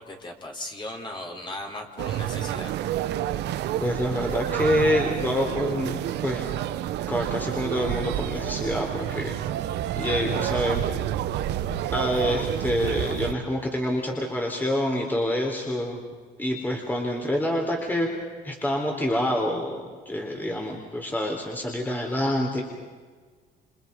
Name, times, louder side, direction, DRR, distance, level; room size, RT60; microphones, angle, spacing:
voice 1, 0.0-2.8, left 1 dB, 25° left, 2 dB, 5.0 m, -37 dB
sound 1, 2.0-13.3, right 12 dB, 75° right, 1.4 m, -29 dB
voice 2, 3.8-6.4 7.1-9.4 10.0-10.8 11.9-16.0 16.4-18.1 18.4-22.6, left 1 dB, 10° left, 1 dB, 4.0 m, -27 dB
29.5 x 26.5 x 5.4 m, 1.5 s
cardioid pair, 110°, 18 cm